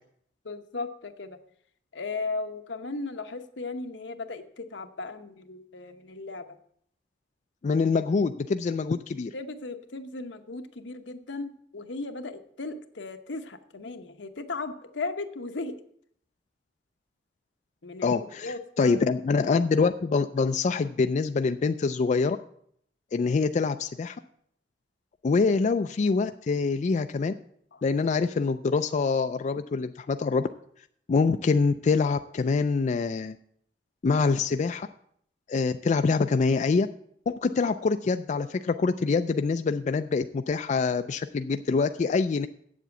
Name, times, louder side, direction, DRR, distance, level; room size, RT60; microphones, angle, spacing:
voice 1, 0.4-1.4 1.9-6.4 9.3-15.7 17.8-19.1 27.7-27.8, left 3 dB, 85° left, 7 dB, 1.0 m, -36 dB
voice 2, 7.6-9.3 18.0-22.4 23.1-24.2 25.2-27.3 27.8-30.5 31.1-33.4 34.0-34.9 35.5-36.9 37.3-42.5, left 4 dB, 40° left, 9 dB, 0.3 m, -25 dB
8.0 x 7.5 x 7.9 m, 0.67 s
head